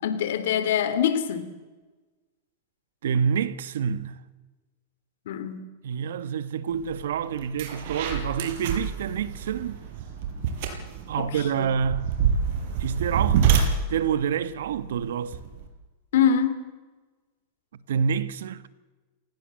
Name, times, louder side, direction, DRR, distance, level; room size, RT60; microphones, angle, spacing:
voice 1, 0.0-1.5 5.3-5.7 11.2-11.7 16.1-16.7, left 8 dB, 75° left, 3.2 m, -24 dB
voice 2, 3.0-4.2 5.8-9.8 11.1-12.2 12.8-15.4 17.7-18.7, right 7 dB, 80° right, 1.6 m, -28 dB
sound 1, 6.9-7.0 7.4-15.7, right 7 dB, 65° right, 5.9 m, -27 dB
28.0 x 19.0 x 7.8 m
hypercardioid pair, 125°, 0 cm